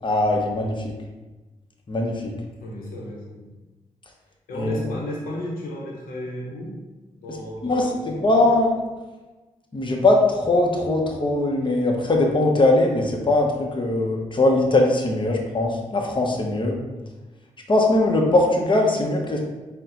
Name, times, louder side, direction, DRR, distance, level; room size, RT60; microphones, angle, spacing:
voice 1, 0.0-0.9 1.9-2.3 4.5-4.8 7.6-7.9 8.2-8.7 9.7-16.8 17.7-19.5, left 2 dB, 35° left, 1 dB, 0.8 m, -20 dB
voice 2, 2.6-3.6 4.5-6.8 7.2-8.3, left 1 dB, 90° left, -3 dB, 0.8 m, -34 dB
4.1 x 2.2 x 3.8 m, 1.2 s
supercardioid pair, 40°, 14 cm